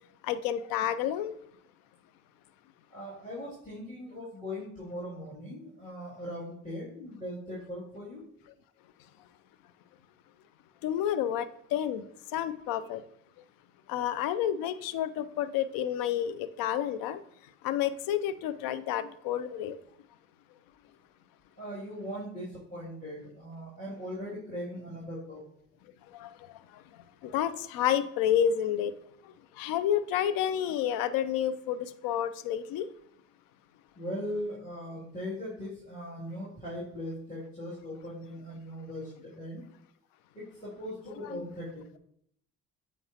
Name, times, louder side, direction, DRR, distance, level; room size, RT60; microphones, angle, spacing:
voice 1, 0.2-1.3 10.8-12.0 12.3-13.0 13.9-17.2 17.6-19.8 26.1-26.3 27.2-28.9 29.6-32.9 41.3-41.4, left 10 dB, 70° left, 0.5 m, -30 dB
voice 2, 2.9-8.2 21.6-25.4 34.0-39.6 40.3-41.8, equal, 20° left, 2.5 m, -39 dB
7.8 x 4.6 x 2.8 m
hypercardioid pair, 55°, 36 cm